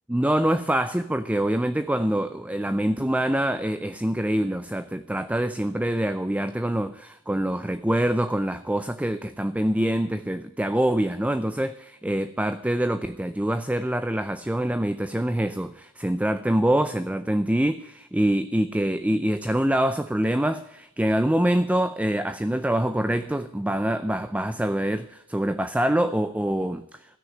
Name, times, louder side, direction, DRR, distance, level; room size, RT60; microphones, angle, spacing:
voice 1, 0.1-26.8, right 1 dB, 5° right, 11 dB, 0.4 m, -25 dB
16.5 x 6.5 x 9.2 m, 0.81 s
head